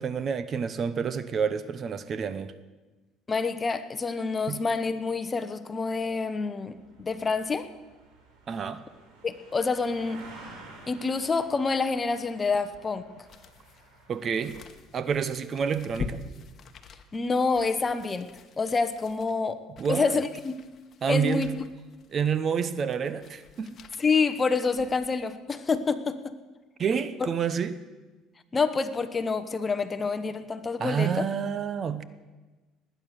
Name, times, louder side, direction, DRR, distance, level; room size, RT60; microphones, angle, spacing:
voice 1, 0.0-2.5 4.5-4.6 8.5-8.8 14.1-14.6 14.9-16.2 19.8-20.2 21.0-21.5 22.1-23.8 26.8-27.8 30.8-32.0, right 6 dB, 40° right, 0.8 m, -28 dB
voice 2, 3.3-7.7 9.2-10.2 10.9-13.2 17.1-19.6 19.9-20.5 21.1-21.6 24.0-26.3 28.5-31.3, left 4 dB, 25° left, 1.0 m, -27 dB
sound 1, 6.6-14.2, right 3 dB, 75° right, 4.5 m, -52 dB
sound 2, 12.5-25.2 25.7-25.8, left 5 dB, 45° left, 1.3 m, -45 dB
19.5 x 9.3 x 6.5 m
supercardioid pair, 95°, 0 cm